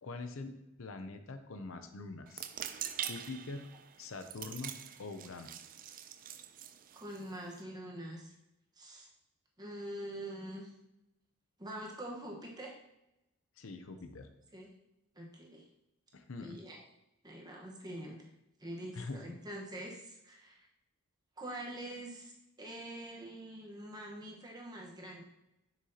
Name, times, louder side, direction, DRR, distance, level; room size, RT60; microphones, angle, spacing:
voice 1, 0.0-2.5 3.1-3.6 4.0-4.7 5.0-5.5 13.6-14.3 16.1-16.6 18.9-19.2, left 3 dB, 65° left, 8 dB, 0.6 m, -44 dB
sound 1, 2.3-7.6, right 10 dB, 40° right, 0.4 m, -44 dB
voice 2, 6.9-8.3 8.8-9.1 9.6-10.7 11.6-12.8 14.5-14.7 15.1-15.6 16.4-16.8 17.2-18.3 18.6-20.7 21.4-25.2, right 1 dB, 20° right, -1 dB, 1.2 m, -45 dB
7.4 x 6.1 x 2.9 m, 0.89 s
head